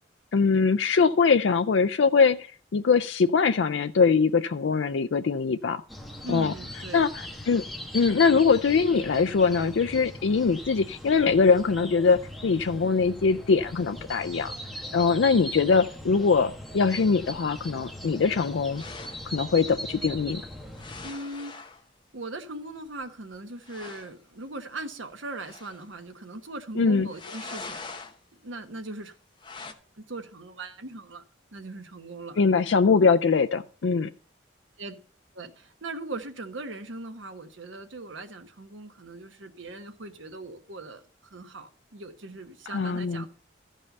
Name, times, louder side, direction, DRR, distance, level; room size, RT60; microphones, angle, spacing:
voice 1, 0.3-2.5 2.7-5.8 6.3-6.5 6.9-7.6 7.9-14.5 14.9-18.8 19.3-20.4 26.8-27.1 32.4-34.1 42.7-43.3, left 5 dB, 70° left, 0.4 m, -22 dB
sound 1, 5.9-21.1, equal, ahead, 1.2 m, -40 dB
voice 2, 6.2-7.1 21.0-21.5 22.1-27.8 28.4-29.1 30.0-31.2 31.5-32.7 34.8-34.9 35.3-43.3, right 2 dB, 85° right, 1.3 m, -39 dB
sound 2, 18.7-19.3 20.7-21.8 23.0-23.1 23.3-23.4 23.6-24.1 25.4-25.9 27.1-28.2 29.4-29.7, left 4 dB, 25° left, 1.0 m, -42 dB
13.5 x 5.5 x 6.5 m
head